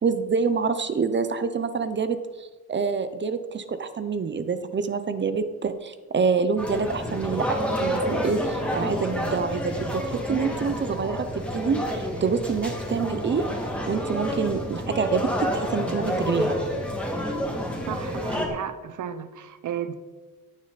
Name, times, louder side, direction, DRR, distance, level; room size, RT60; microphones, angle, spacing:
voice 1, 0.0-11.3 11.5-13.5 13.9-16.6, right 5 dB, 35° right, 10 dB, 0.7 m, -27 dB
sound 1, 6.6-18.5, equal, 5° left, 2.3 m, -29 dB
voice 2, 17.9-19.9, right 9 dB, 65° right, 12 dB, 1.0 m, -34 dB
16.5 x 10.0 x 4.1 m, 1.3 s
wide cardioid pair, 170°, 34 cm